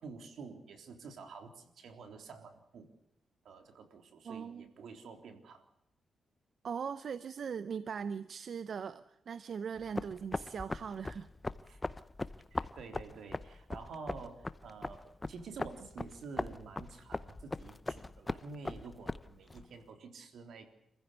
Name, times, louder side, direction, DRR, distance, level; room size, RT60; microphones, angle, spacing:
voice 1, 0.0-2.9 3.4-5.6 11.6-11.8 12.5-20.7, right 4 dB, 80° right, 6 dB, 3.7 m, -49 dB
voice 2, 4.2-4.7 6.6-11.3, right 6 dB, 60° right, 14 dB, 0.8 m, -40 dB
sound 1, 9.8-19.7, left 2 dB, 20° left, 0.8 m, -40 dB
27.5 x 15.5 x 8.2 m, 0.83 s
cardioid pair, 105°, 0 cm